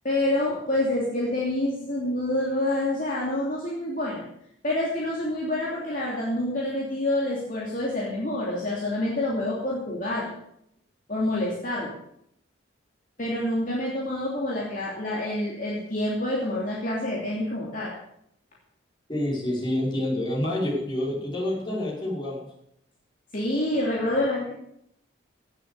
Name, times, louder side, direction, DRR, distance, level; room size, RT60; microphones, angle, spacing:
voice 1, 0.0-4.2 4.6-10.3 11.1-11.9 13.2-17.9 23.3-24.5, left 1 dB, 40° left, -5 dB, 2.9 m, -27 dB
voice 2, 19.1-22.5, left 1 dB, 25° left, -6 dB, 5.5 m, -28 dB
17.0 x 7.6 x 6.7 m, 0.74 s
head